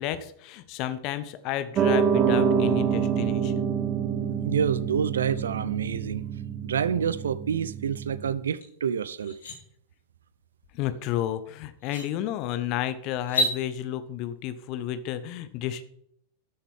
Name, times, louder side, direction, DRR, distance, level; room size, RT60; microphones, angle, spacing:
voice 1, 0.0-3.7 10.7-15.9, left 12 dB, 40° left, 0.9 m, -32 dB
Piano, 1.8-8.3, right 7 dB, 30° right, 1.3 m, -26 dB
voice 2, 4.5-6.2 6.6-9.3, right 7 dB, 65° right, 0.5 m, -28 dB
sound 1, 8.6-8.7 9.1-9.6 11.2-11.3 11.8-12.1 13.2-13.6, equal, 65° left, 3.6 m, -28 dB
13.0 x 7.0 x 3.7 m
figure-of-eight pair, 90°, 0 cm